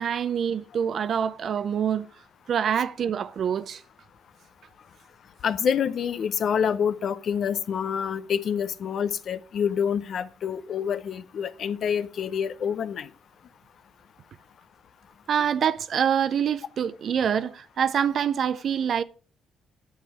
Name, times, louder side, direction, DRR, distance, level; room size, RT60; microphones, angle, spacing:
voice 1, 0.0-2.1 2.5-3.8 15.3-19.0, right 8 dB, 60° right, 0.5 m, -25 dB
voice 2, 5.4-13.1, left 7 dB, 60° left, 0.6 m, -27 dB
10.5 x 7.2 x 4.6 m
cardioid pair, 90°, 0 cm